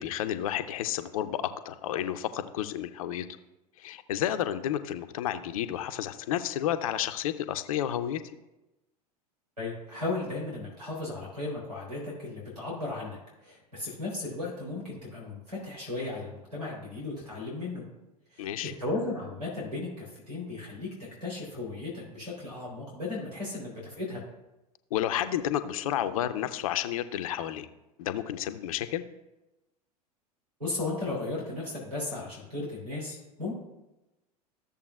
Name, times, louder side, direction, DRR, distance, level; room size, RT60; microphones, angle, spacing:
voice 1, 0.0-3.3 3.8-8.2 18.4-18.7 24.9-27.7 28.0-29.0, left 11 dB, 60° left, 10 dB, 0.6 m, -31 dB
voice 2, 9.6-17.8 18.3-18.5 18.8-20.9 21.2-24.2 30.6-33.5, left 2 dB, 90° right, -5 dB, 3.4 m, -35 dB
13.5 x 7.0 x 2.3 m, 0.97 s
figure-of-eight pair, 85°, 20 cm